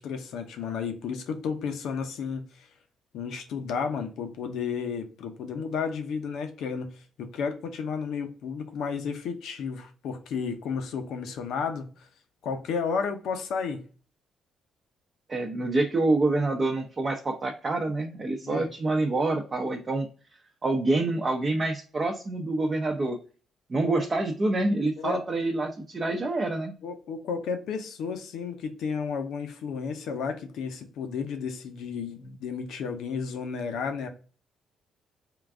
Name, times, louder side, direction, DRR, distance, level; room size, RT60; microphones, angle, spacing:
voice 1, 0.0-2.7 3.1-11.9 12.4-13.8 18.4-18.7 23.8-24.1 25.0-25.2 26.8-34.1, left 6 dB, 80° left, 0.7 m, -32 dB
voice 2, 15.3-20.1 20.6-23.2 23.7-26.7, right 2 dB, 35° right, 0.6 m, -27 dB
3.8 x 2.4 x 3.5 m
cardioid pair, 90°, 0 cm